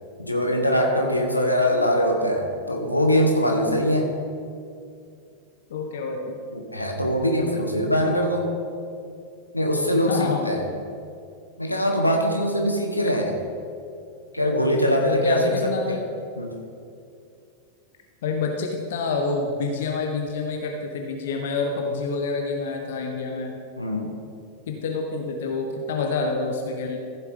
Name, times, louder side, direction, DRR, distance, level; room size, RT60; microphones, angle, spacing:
voice 1, 0.2-4.1 6.5-8.5 9.5-10.6 11.6-13.3 14.3-16.0 16.4-16.6 23.8-24.1, equal, 85° left, 2 dB, 1.2 m, -22 dB
voice 2, 5.7-6.4 10.1-10.5 15.1-16.1 18.2-23.6 24.7-27.0, left 4 dB, 60° left, 2 dB, 0.9 m, -27 dB
14.5 x 7.4 x 3.6 m, 2.4 s
figure-of-eight pair, 90°, 0 cm